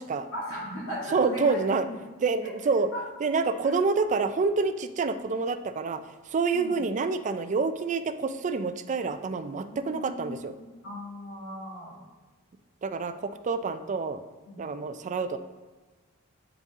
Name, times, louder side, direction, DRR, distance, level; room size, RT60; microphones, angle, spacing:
voice 1, 0.3-1.7 2.4-2.5 2.9-3.0 6.5-6.8 9.7-12.0 14.5-14.6, equal, 65° left, -6 dB, 2.1 m, -37 dB
voice 2, 1.1-1.9 2.2-2.9 3.2-10.5 12.8-14.2 14.6-15.4, right 4 dB, 35° right, 10 dB, 0.3 m, -27 dB
8.2 x 3.9 x 3.6 m, 1.3 s
head